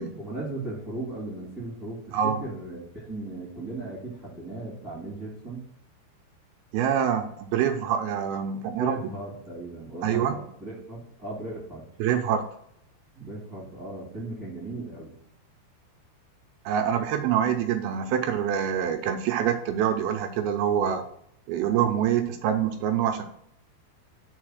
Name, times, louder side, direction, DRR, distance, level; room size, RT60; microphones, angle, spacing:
voice 1, 0.0-5.7 8.8-11.8 13.1-15.1 20.6-20.7, right 2 dB, 10° right, -9 dB, 1.5 m, -37 dB
voice 2, 6.7-9.0 10.0-10.4 12.0-12.5 16.7-21.0 21.5-23.2, right 9 dB, 80° right, 6 dB, 2.4 m, -25 dB
6.6 x 4.1 x 6.3 m, 0.71 s
omnidirectional pair, 4.7 m